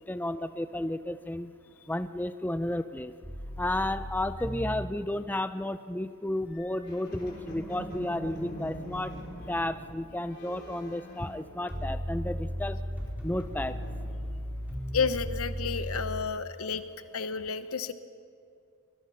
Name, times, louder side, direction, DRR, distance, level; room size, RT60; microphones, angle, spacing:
voice 1, 0.0-1.5 1.9-3.1 3.6-9.1 9.5-12.8 13.2-13.8, left 1 dB, 10° left, 11 dB, 0.5 m, -32 dB
sound 1, 3.2-4.9 11.7-16.2, equal, 5° right, 4.1 m, -35 dB
sound 2, 6.5-12.1 12.3-14.6, equal, 50° left, 4.7 m, -44 dB
voice 2, 14.9-16.8 17.1-17.9, left 5 dB, 80° left, 11 dB, 1.1 m, -31 dB
24.0 x 21.5 x 5.7 m, 2.5 s
head